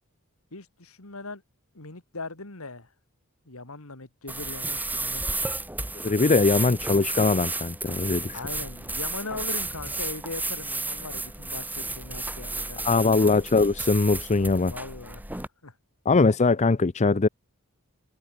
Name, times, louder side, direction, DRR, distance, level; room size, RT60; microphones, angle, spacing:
voice 1, 0.5-1.4 1.7-2.9 3.4-5.3 8.3-13.1 14.6-15.8, left 3 dB, 70° left, 3.0 m, -39 dB
sound 1, 4.3-15.5, right 2 dB, 10° right, 2.1 m, -33 dB
voice 2, 6.0-8.4 12.8-14.7 16.1-17.3, left 3 dB, 30° left, 0.6 m, -21 dB
head